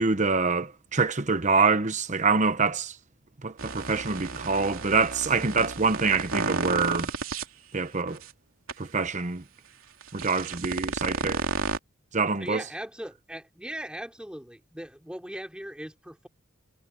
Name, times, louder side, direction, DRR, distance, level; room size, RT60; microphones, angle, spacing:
voice 1, 0.0-2.9 3.4-7.1 7.7-8.2 8.8-9.4 10.1-11.4 12.1-12.6, right 4 dB, 35° right, 1.0 m, -25 dB
sound 1, 3.6-7.4 8.1-8.2 8.7-8.8 10.0-11.8, right 3 dB, 85° right, 2.9 m, -32 dB
voice 2, 12.4-16.3, right 1 dB, 5° right, 3.5 m, -39 dB
head